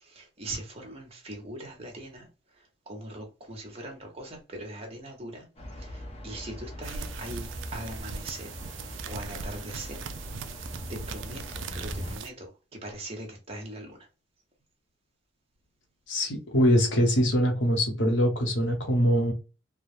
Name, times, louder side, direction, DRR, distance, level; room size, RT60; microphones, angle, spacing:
voice 1, 0.2-2.3 2.9-5.4 6.2-7.5 7.7-8.5 9.1-10.0 11.1-12.5 12.8-13.9, right 1 dB, 30° right, 1.1 m, -40 dB
sound 1, 5.6-12.2, equal, 30° left, 0.8 m, -41 dB
sound 2, 6.8-12.3, right 5 dB, 70° right, 0.4 m, -39 dB
voice 2, 16.1-19.3, equal, 70° left, 1.0 m, -23 dB
3.3 x 2.2 x 2.6 m
head